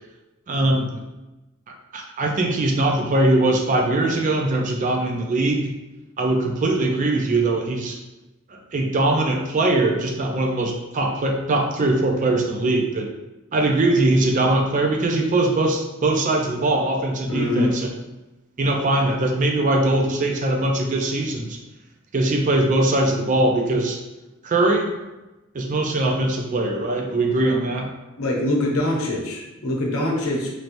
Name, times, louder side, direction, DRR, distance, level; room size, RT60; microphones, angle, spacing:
voice 1, 0.5-1.0 1.7-5.7 6.2-8.0 8.5-13.1 13.5-17.9 18.6-21.6 22.1-24.0 24.4-24.9 25.5-27.9, right 2 dB, 35° right, 2 dB, 0.4 m, -21 dB
voice 2, 17.3-17.8 28.2-30.5, left 1 dB, 70° left, -2 dB, 0.8 m, -23 dB
3.1 x 2.9 x 2.5 m, 1.0 s
head